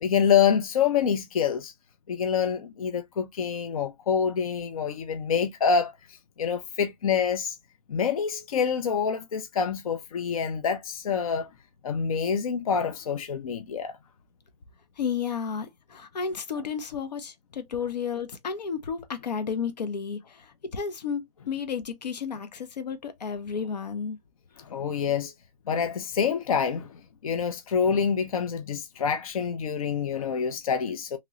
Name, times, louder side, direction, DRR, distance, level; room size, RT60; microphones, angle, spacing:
voice 1, 0.0-1.7 2.1-7.6 7.9-11.5 11.8-14.0 24.6-25.3 25.7-31.2, left 7 dB, 60° left, 0.5 m, -26 dB
voice 2, 15.0-24.2, left 6 dB, 80° left, 0.8 m, -32 dB
3.0 x 2.9 x 2.4 m
hypercardioid pair, 165°, 21 cm